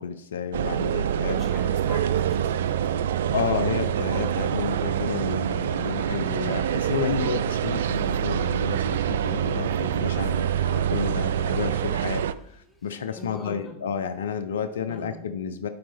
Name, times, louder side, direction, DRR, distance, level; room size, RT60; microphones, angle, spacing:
voice 1, 0.0-1.4 3.3-15.7, left 7 dB, 80° left, 9 dB, 0.6 m, -31 dB
sound 1, 0.5-12.3, right 9 dB, 70° right, 0.4 m, -26 dB
voice 2, 1.1-3.1 13.2-13.8 14.9-15.2, left 1 dB, 30° left, 0 dB, 2.4 m, -41 dB
sound 2, 6.1-13.5, equal, ahead, 1.4 m, -51 dB
11.5 x 4.4 x 3.4 m, 0.71 s
hypercardioid pair, 100°, 0 cm